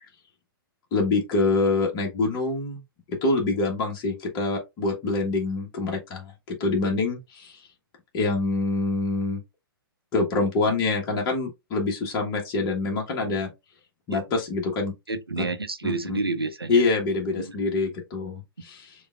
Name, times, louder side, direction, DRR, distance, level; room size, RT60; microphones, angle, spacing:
voice 1, 0.9-2.8 3.1-7.6 8.1-9.4 10.1-13.5 14.1-14.9 15.8-16.2 16.7-18.9, left 3 dB, 30° left, 1.3 m, -25 dB
voice 2, 15.1-16.8 17.4-17.6, right 3 dB, 85° right, 0.8 m, -29 dB
6.9 x 2.5 x 2.4 m
figure-of-eight pair, 115°, 12 cm